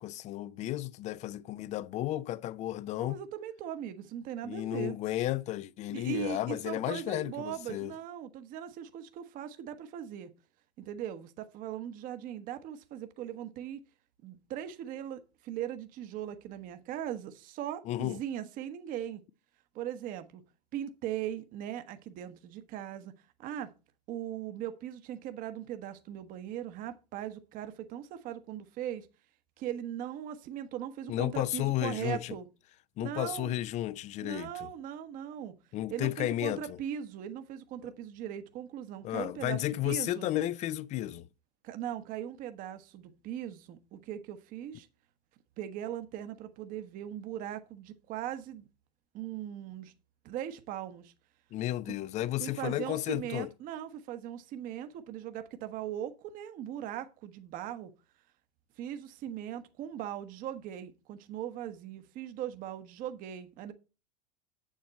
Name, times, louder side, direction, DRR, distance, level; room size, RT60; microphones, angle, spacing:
voice 1, 0.0-3.2 4.4-7.9 17.9-18.2 31.1-32.3 33.0-34.7 35.7-36.8 39.0-41.3 51.5-53.5, left 14 dB, 35° left, 0.6 m, -33 dB
voice 2, 3.0-5.0 5.9-10.3 10.8-13.8 14.2-19.2 19.7-20.4 20.7-23.1 23.4-23.7 24.1-29.1 29.6-32.5 33.0-33.5 34.2-35.6 35.9-40.3 41.6-44.9 45.6-48.6 49.1-49.9 50.2-51.1 51.9-52.0 52.4-57.9 58.8-63.7, right 10 dB, 40° right, 1.1 m, -39 dB
8.4 x 7.4 x 4.1 m
hypercardioid pair, 95°, 21 cm